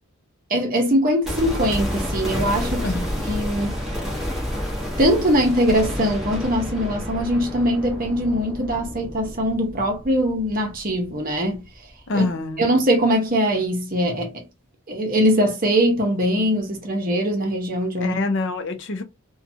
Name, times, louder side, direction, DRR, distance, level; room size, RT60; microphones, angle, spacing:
voice 1, 0.5-2.9 3.3-3.8 5.0-11.6 12.1-12.3 12.6-14.4 14.9-18.2, equal, 40° right, 0.8 m, -21 dB
sound 1, 1.2-11.3 11.5-11.6, equal, ahead, 0.9 m, -29 dB
voice 2, 12.1-12.7 18.0-19.0, left 3 dB, 55° left, 0.5 m, -25 dB
2.7 x 2.2 x 2.7 m
head